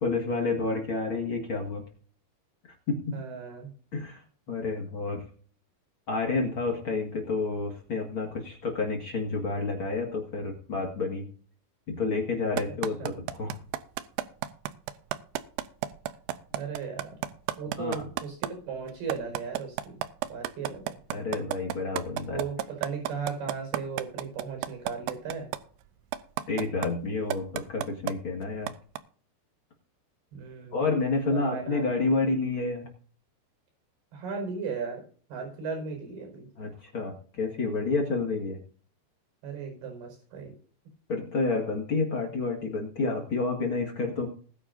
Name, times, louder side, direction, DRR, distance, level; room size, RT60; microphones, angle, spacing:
voice 1, 0.0-1.8 2.9-3.2 3.9-4.2 4.5-5.2 6.1-11.3 11.9-13.6 17.8-18.0 21.1-22.4 26.5-28.7 30.7-32.8 36.6-38.6 41.1-44.3, left 3 dB, 60° left, 0 dB, 1.3 m, -29 dB
voice 2, 3.1-3.7 13.0-13.1 16.6-17.1 17.6-20.0 20.3-21.0 22.3-25.5 30.3-30.8 31.3-32.0 34.1-35.1 35.3-36.5 39.4-40.5, right 5 dB, 60° right, 3 dB, 7.0 m, -36 dB
sound 1, 12.6-18.5 18.9-25.6 26.1-26.9 27.3-28.1 28.7-29.0, right 13 dB, 80° right, 2.5 m, -31 dB
20.0 x 9.8 x 2.6 m, 0.43 s
omnidirectional pair, 5.5 m